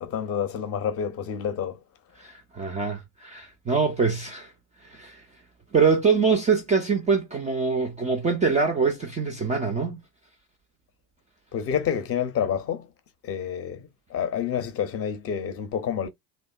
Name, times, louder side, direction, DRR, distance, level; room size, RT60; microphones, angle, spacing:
voice 1, 0.0-1.8 11.5-12.8 13.2-13.8 14.1-16.1, left 8 dB, 30° left, 0.6 m, -28 dB
voice 2, 2.2-4.5 4.8-5.3 5.7-10.0, right 5 dB, 15° right, 0.4 m, -24 dB
2.7 x 2.0 x 2.3 m
figure-of-eight pair, 60°, 48 cm